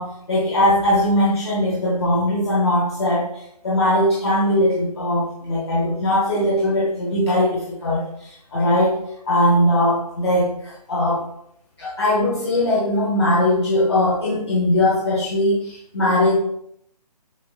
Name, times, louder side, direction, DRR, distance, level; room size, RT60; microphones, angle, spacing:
voice 1, 0.0-3.3 3.6-11.2 11.8-16.3, left 1 dB, 40° left, -5 dB, 1.0 m, -20 dB
7.2 x 2.8 x 2.3 m, 0.72 s
figure-of-eight pair, 140°, 21 cm